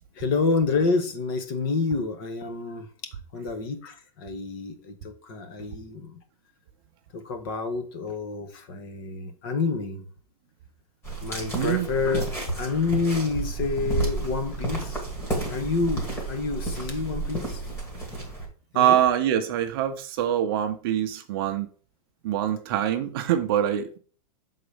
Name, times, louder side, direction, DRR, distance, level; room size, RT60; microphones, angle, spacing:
voice 1, 0.2-2.9 3.3-6.2 7.1-10.1 11.2-12.2 12.6-15.0 15.5-17.6 18.7-19.0, left 4 dB, 40° left, 8 dB, 1.1 m, -28 dB
sound 1, 11.0-18.5, right 2 dB, 10° left, 1.6 m, -31 dB
voice 2, 11.5-11.9 18.7-21.7 22.2-24.0, right 11 dB, 40° right, 7 dB, 0.7 m, -24 dB
6.7 x 4.0 x 5.0 m, 0.41 s
supercardioid pair, 175°, 19 cm